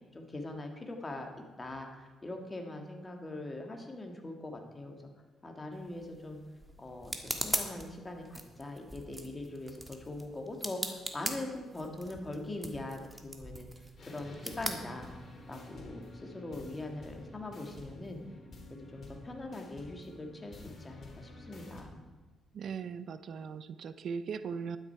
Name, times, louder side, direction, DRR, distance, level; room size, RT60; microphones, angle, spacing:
voice 1, 0.1-1.3 1.6-5.0 5.4-6.4 6.8-13.7 14.1-15.1 15.5-18.2 18.9-22.0, left 2 dB, 20° left, 3 dB, 2.0 m, -42 dB
sound 1, 5.7-15.6, right 1 dB, 10° right, 1.5 m, -41 dB
sound 2, 14.0-21.8, left 1 dB, 50° left, 3.2 m, -50 dB
voice 2, 22.5-24.8, right 6 dB, 60° right, 13 dB, 0.5 m, -39 dB
11.5 x 10.0 x 4.6 m, 1.3 s
cardioid pair, 90°, 0 cm